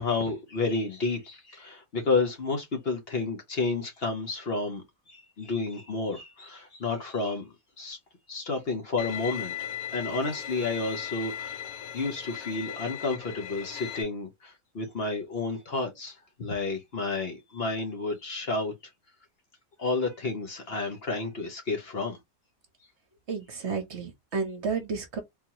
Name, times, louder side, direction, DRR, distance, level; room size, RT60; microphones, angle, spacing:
voice 1, 0.0-8.0 8.3-11.7 11.9-18.7 19.8-22.2, left 3 dB, 50° left, 1.0 m, -31 dB
Bowed string instrument, 9.0-14.0, left 10 dB, 90° left, 1.1 m, -38 dB
voice 2, 23.3-25.2, right 5 dB, 55° right, 1.1 m, -32 dB
3.8 x 2.9 x 2.8 m
omnidirectional pair, 1.5 m